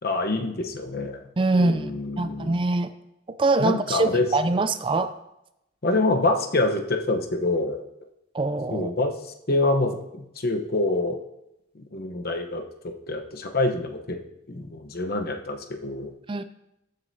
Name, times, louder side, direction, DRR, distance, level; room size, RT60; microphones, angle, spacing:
voice 1, 0.0-1.2 1.5-2.6 3.6-4.3 5.8-7.8 8.7-9.1 9.5-11.2 11.7-14.2 14.5-16.1, left 2 dB, 50° left, 4 dB, 1.0 m, -26 dB
voice 2, 1.4-1.9 2.2-2.9 3.4-5.1 8.3-8.9 16.3-16.4, right 2 dB, 25° right, 12 dB, 0.4 m, -23 dB
14.0 x 7.7 x 2.7 m, 0.86 s
head